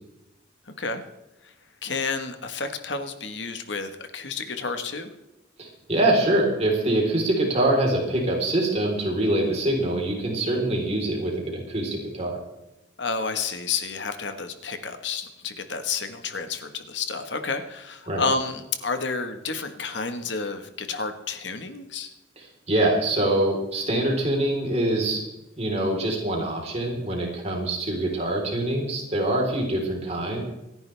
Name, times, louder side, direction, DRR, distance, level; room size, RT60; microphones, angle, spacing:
voice 1, 0.7-1.0 1.4-1.5 1.8-5.1 13.0-22.1, left 4 dB, 70° left, 8 dB, 1.4 m, -30 dB
voice 2, 5.6-12.4 18.1-18.2 22.4-25.2 25.6-30.4, right 1 dB, 35° right, -1 dB, 3.9 m, -24 dB
26.5 x 10.5 x 3.4 m, 0.97 s
head